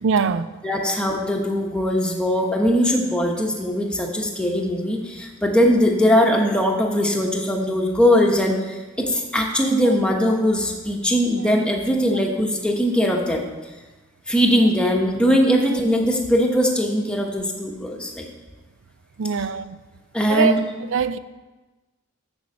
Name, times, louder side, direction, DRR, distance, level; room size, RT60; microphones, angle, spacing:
voice 1, 0.0-0.5 19.2-19.8 20.3-20.6 20.9-21.2, right 6 dB, 60° right, 0.4 m, -22 dB
voice 2, 0.6-13.4 14.3-18.3 20.1-20.6, equal, 5° left, 1.0 m, -20 dB
7.7 x 7.0 x 6.4 m
head